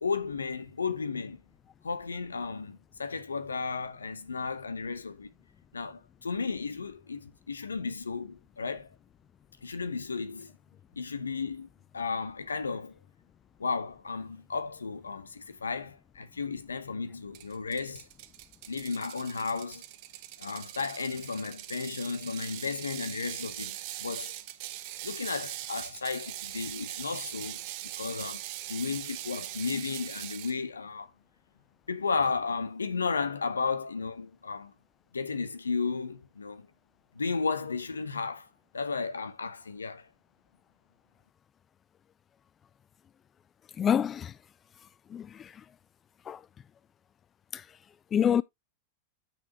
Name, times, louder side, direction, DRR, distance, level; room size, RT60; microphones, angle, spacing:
voice 1, 0.0-1.4 1.8-5.3 5.7-8.9 9.6-10.5 11.0-11.7 11.9-13.0 13.6-18.1 18.7-19.8 20.4-24.3 25.0-27.7 28.0-28.4 28.7-31.1 31.9-34.7 35.1-36.7 37.1-38.5 38.7-40.1, left 4 dB, 85° left, 0.9 m, -34 dB
Ratchet pawl, 17.3-30.6, right 14 dB, 55° right, 0.9 m, -41 dB
voice 2, 43.8-44.3 45.1-45.5 46.3-46.4 47.5-47.6 48.1-48.4, left 8 dB, 30° left, 0.3 m, -26 dB
9.0 x 5.6 x 2.8 m
hypercardioid pair, 95°, 0 cm